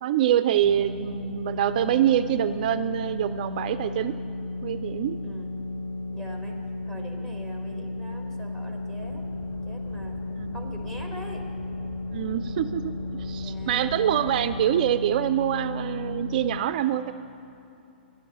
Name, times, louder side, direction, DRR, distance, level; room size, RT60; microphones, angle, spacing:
voice 1, 0.0-4.1 4.6-5.2 10.4-10.5 12.1-17.1, right 11 dB, 50° right, 11 dB, 0.3 m, -25 dB
sound 1, 0.6-16.6, left 2 dB, 75° left, 1.1 m, -34 dB
voice 2, 5.2-5.6 6.1-6.6 6.9-9.3 9.6-10.2 10.5-11.4 13.4-13.9, right 1 dB, 5° left, 2 dB, 1.6 m, -43 dB
sound 2, 9.0-14.6, left 3 dB, 50° left, 1.1 m, -45 dB
10.5 x 7.1 x 9.1 m, 2.8 s
hypercardioid pair, 115°, 6 cm